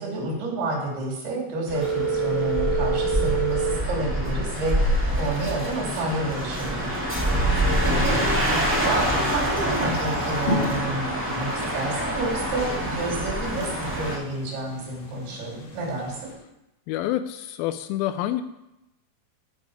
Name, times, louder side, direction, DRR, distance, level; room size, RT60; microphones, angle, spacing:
voice 1, 0.0-7.0 7.8-8.2 8.7-16.3, right 2 dB, 80° right, -2 dB, 4.8 m, -30 dB
sound 1, 1.7-14.2, equal, 20° right, 0.3 m, -26 dB
Telephone, 1.7-3.7, right 4 dB, 45° right, 0.8 m, -25 dB
voice 2, 7.3-8.2 16.9-18.4, left 13 dB, 80° left, 10 dB, 2.3 m, -29 dB
sound 2, 10.5-16.3, left 1 dB, 55° left, 2.8 m, -35 dB
13.5 x 6.5 x 4.8 m, 0.93 s
omnidirectional pair, 4.5 m